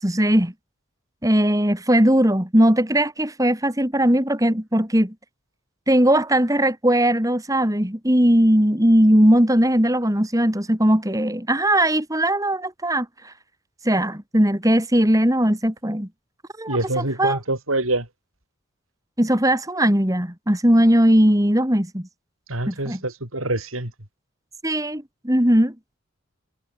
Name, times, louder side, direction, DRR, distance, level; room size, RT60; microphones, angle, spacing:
voice 1, 0.0-0.5 1.2-5.1 5.9-13.3 13.8-16.1 16.6-17.4 19.2-22.1 22.7-23.0 24.6-25.7, right 1 dB, 15° right, 3.0 m, -19 dB
voice 2, 16.7-18.1 22.5-23.9, right 2 dB, 85° right, 7.7 m, -25 dB
head